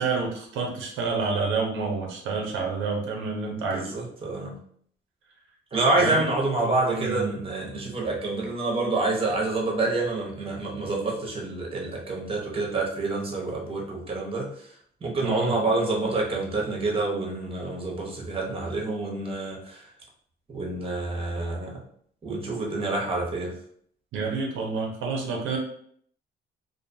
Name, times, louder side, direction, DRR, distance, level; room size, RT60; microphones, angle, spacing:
voice 1, 0.0-3.9 6.0-6.2 6.6-7.4 15.2-15.5 24.1-25.6, right 4 dB, 85° right, 0 dB, 0.6 m, -29 dB
voice 2, 3.7-4.6 5.7-14.5 15.0-19.8 20.5-21.7 22.2-23.5, right 2 dB, 30° right, -1 dB, 0.8 m, -27 dB
2.5 x 2.3 x 2.6 m, 0.62 s
cardioid pair, 90°, 20 cm